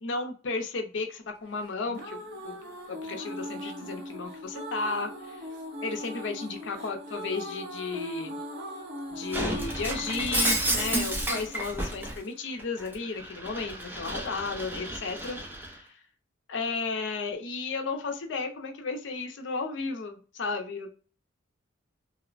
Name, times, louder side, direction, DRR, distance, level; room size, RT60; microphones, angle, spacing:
voice 1, 0.0-2.2 2.4-2.6 2.9-5.4 5.8-8.4 9.1-15.4 15.6-15.8 16.5-20.9, left 4 dB, 65° left, 5 dB, 0.5 m, -34 dB
sound 1, 1.6-12.6, equal, 60° right, 0.8 m, -40 dB
Shatter, 9.3-12.2 12.6-15.7, right 1 dB, 10° right, 0.5 m, -31 dB
2.9 x 2.0 x 2.4 m, 0.38 s
head